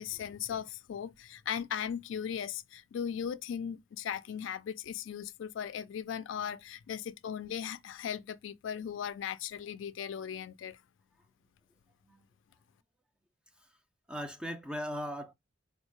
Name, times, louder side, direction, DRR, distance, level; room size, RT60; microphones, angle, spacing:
voice 1, 0.0-10.8, left 8 dB, 75° left, 0.3 m, -38 dB
voice 2, 14.1-15.3, equal, 5° right, 0.3 m, -39 dB
4.1 x 2.1 x 3.0 m
head